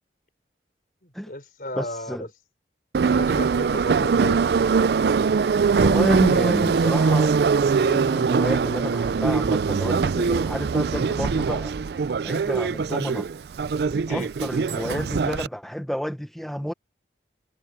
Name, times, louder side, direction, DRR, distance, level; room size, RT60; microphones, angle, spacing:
voice 1, 1.0-2.3 3.0-4.4 14.1-14.3, left 1 dB, 50° left, 4.5 m, -35 dB
voice 2, 1.7-2.2 5.8-11.7 12.2-13.3 13.9-16.7, equal, ahead, 0.9 m, -30 dB
Subway metro underground, 2.9-15.5, right 5 dB, 65° right, 0.4 m, -22 dB
head